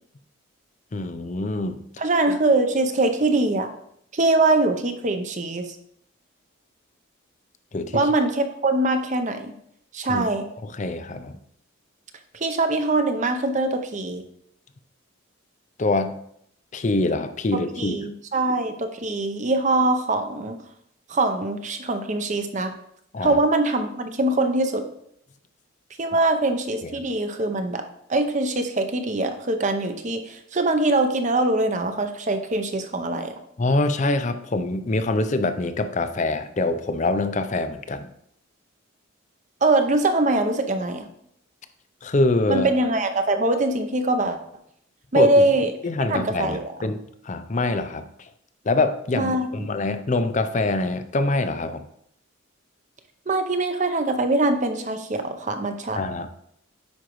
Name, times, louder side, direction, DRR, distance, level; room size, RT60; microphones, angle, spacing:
voice 1, 0.9-1.8 7.7-8.1 10.1-10.3 10.6-11.4 15.8-16.1 16.7-18.0 23.1-23.4 26.8-26.9 33.6-38.1 42.0-42.7 45.1-45.5 45.8-48.3 48.7-49.3 49.6-51.9 55.9-56.3, left 2 dB, 35° left, 10 dB, 0.5 m, -24 dB
voice 2, 2.0-3.7 4.1-5.7 7.9-9.5 9.9-10.5 12.4-14.2 17.5-20.6 21.1-22.7 23.2-24.9 26.0-33.3 39.6-41.1 42.5-44.4 45.1-45.7 46.1-46.7 49.1-49.7 53.3-56.0, right 2 dB, 35° right, 7 dB, 0.6 m, -23 dB
9.5 x 5.1 x 3.0 m, 0.72 s
head